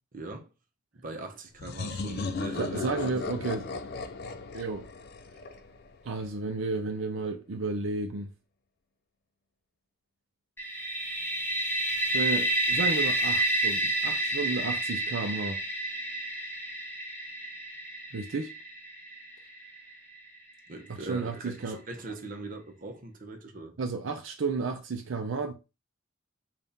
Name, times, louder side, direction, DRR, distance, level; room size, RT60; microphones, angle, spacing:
voice 1, 0.1-0.5 0.9-3.0 20.7-23.7, right 2 dB, 40° right, 0.8 m, -41 dB
sound 1, 1.6-6.2, left 3 dB, 50° left, 0.4 m, -36 dB
voice 2, 2.6-3.7 4.5-4.9 6.0-8.3 12.1-15.6 18.1-18.5 20.9-21.8 23.8-25.5, right 3 dB, 70° right, 0.5 m, -32 dB
sound 2, 10.6-20.3, right 2 dB, 10° left, 0.9 m, -30 dB
3.5 x 2.4 x 4.1 m
head